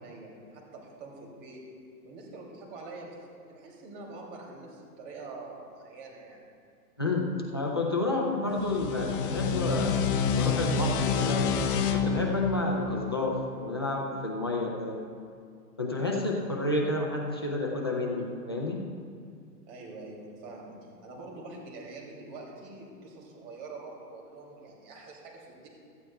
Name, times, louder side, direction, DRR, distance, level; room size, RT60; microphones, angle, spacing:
voice 1, 0.0-1.6 2.0-3.2 3.5-6.4 19.7-25.7, right 3 dB, 35° right, -1 dB, 2.7 m, -45 dB
voice 2, 7.5-11.4 11.9-15.0 15.8-18.8, left 2 dB, 20° left, -2 dB, 0.3 m, -30 dB
sound 1, 8.5-13.8, left 5 dB, 35° left, 0.8 m, -28 dB
16.0 x 13.5 x 2.2 m, 2.3 s
hypercardioid pair, 140°, 49 cm